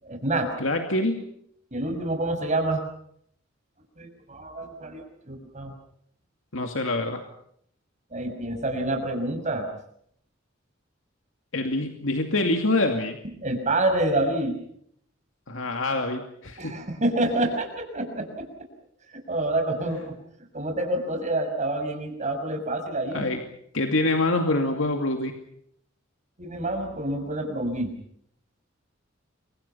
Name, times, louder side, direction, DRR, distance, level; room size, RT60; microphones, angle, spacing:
voice 1, 0.0-0.5 1.7-2.8 4.0-5.7 8.1-9.7 13.4-14.6 16.6-18.4 19.1-20.2 20.5-23.3 26.4-27.9, right 1 dB, 40° right, 5 dB, 6.2 m, -27 dB
voice 2, 0.6-1.3 6.5-7.2 11.5-13.2 15.5-16.7 19.9-20.0 23.1-23.4 23.7-25.3, left 2 dB, 80° left, 4 dB, 2.5 m, -25 dB
30.0 x 24.5 x 5.7 m, 0.69 s
head